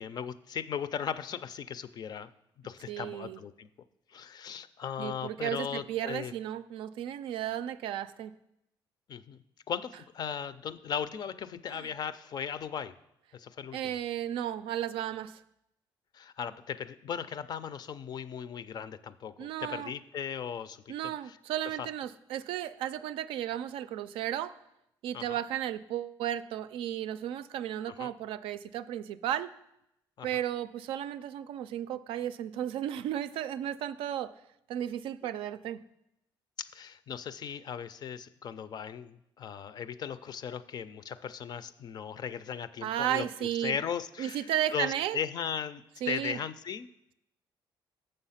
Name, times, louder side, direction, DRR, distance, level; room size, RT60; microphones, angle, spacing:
voice 1, 0.0-2.3 2.6-3.7 4.1-6.3 9.1-9.4 9.7-12.9 13.3-14.0 16.1-21.4 21.8-21.9 25.1-25.4 28.0-28.1 30.2-30.4 36.6-43.3 43.6-46.9, left 7 dB, 50° left, 14 dB, 0.4 m, -37 dB
voice 2, 2.9-3.4 5.0-8.3 11.7-11.9 13.7-15.4 19.4-19.9 20.9-24.6 25.0-29.5 30.2-34.3 34.7-35.8 42.8-43.8 44.2-45.2 46.0-46.4, right 11 dB, 85° right, 13 dB, 0.4 m, -34 dB
6.9 x 6.5 x 5.6 m, 0.82 s
cardioid pair, 100°, 9 cm